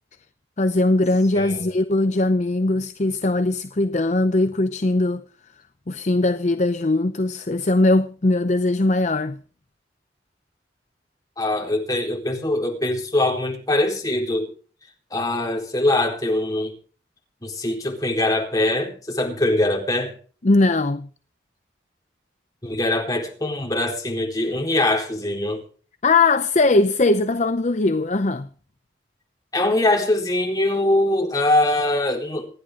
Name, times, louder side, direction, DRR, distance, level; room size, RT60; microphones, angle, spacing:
voice 1, 0.6-5.2 5.9-9.4 20.4-21.1 26.0-28.5, left 2 dB, 40° left, 0.6 m, -20 dB
voice 2, 1.3-1.7 11.4-14.5 15.1-16.7 17.4-20.1 22.6-25.6 29.5-32.5, left 1 dB, 20° left, 4.2 m, -22 dB
27.0 x 10.5 x 3.8 m
head